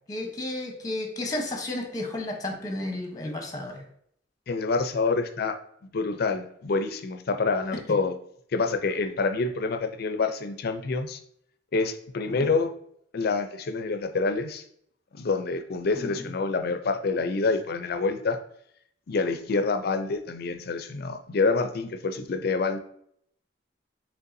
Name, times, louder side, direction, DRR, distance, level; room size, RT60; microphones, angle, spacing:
voice 1, 0.1-3.8 7.7-7.8 12.3-12.5 15.9-16.3, left 1 dB, 20° left, 2 dB, 0.9 m, -33 dB
voice 2, 4.5-5.6 5.9-8.1 8.5-11.2 11.7-12.7 13.1-14.6 15.1-18.4 19.1-22.8, left 4 dB, 55° left, 8 dB, 0.5 m, -27 dB
5.3 x 3.4 x 2.6 m, 0.67 s
head